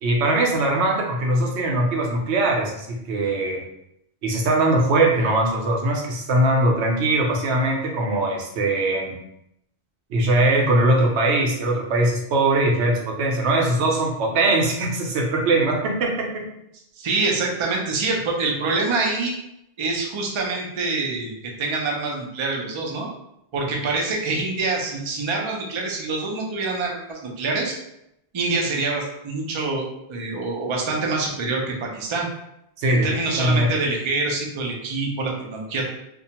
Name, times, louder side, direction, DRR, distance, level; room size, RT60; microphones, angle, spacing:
voice 1, 0.0-3.6 4.2-9.2 10.1-16.5 32.8-33.1 33.4-33.7, right 2 dB, 85° right, 0 dB, 0.9 m, -21 dB
voice 2, 17.0-19.3 19.8-21.3 21.6-23.1 23.5-27.8 28.3-32.3 32.9-35.9, right 3 dB, 50° right, -1 dB, 0.3 m, -25 dB
2.3 x 2.1 x 2.8 m, 0.80 s
omnidirectional pair, 1.1 m